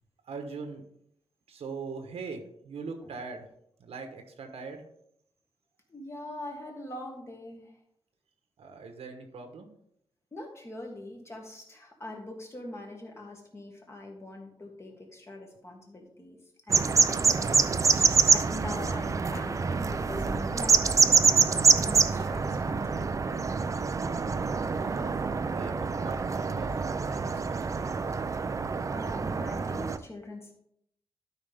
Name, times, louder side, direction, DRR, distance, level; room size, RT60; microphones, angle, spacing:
voice 1, 0.3-0.8 1.5-3.5 3.8-4.9 8.6-9.7 24.7-25.1 25.4-28.2, right 4 dB, 85° right, 5 dB, 1.2 m, -41 dB
voice 2, 5.9-7.8 10.3-16.4 16.7-18.0 18.3-23.8 27.8-28.0 28.9-30.5, left 1 dB, 25° left, 1 dB, 1.7 m, -43 dB
sound 1, 16.7-30.0, right 4 dB, 30° right, 0.4 m, -26 dB
12.0 x 5.1 x 3.5 m, 0.74 s
wide cardioid pair, 140°, 10 cm